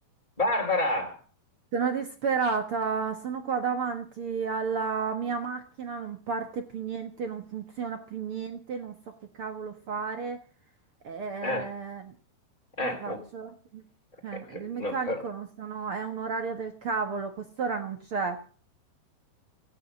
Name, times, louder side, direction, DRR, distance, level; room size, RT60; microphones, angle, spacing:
voice 1, 0.4-1.2 11.4-11.7 12.8-13.2 14.3-15.2, left 2 dB, 10° left, -2 dB, 2.2 m, -29 dB
voice 2, 1.7-8.9 9.4-10.4 11.0-12.1 12.8-13.8 14.2-18.4, right 5 dB, 70° right, 6 dB, 1.3 m, -32 dB
17.0 x 10.5 x 7.3 m, 0.41 s
omnidirectional pair, 4.8 m